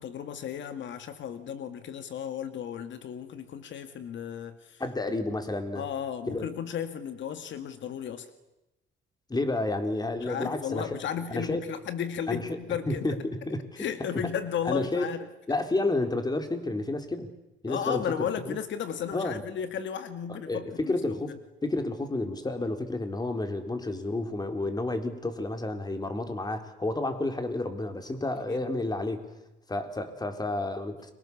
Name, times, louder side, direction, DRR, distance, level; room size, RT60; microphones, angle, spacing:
voice 1, 0.0-4.8 5.8-8.3 10.2-13.2 13.8-15.3 17.7-21.0 28.5-28.6, left 8 dB, 70° left, 10 dB, 1.8 m, -34 dB
voice 2, 4.8-5.9 6.3-6.5 9.3-10.9 11.3-11.6 12.3-12.6 12.9-13.6 14.1-14.2 14.7-15.1 15.5-17.4 17.6-18.0 18.4-18.6 19.1-19.4 20.3-21.3 21.6-29.3 29.7-31.1, left 2 dB, 20° left, 7 dB, 3.7 m, -30 dB
30.0 x 24.0 x 7.2 m, 0.97 s
cardioid pair, 90°, 20 cm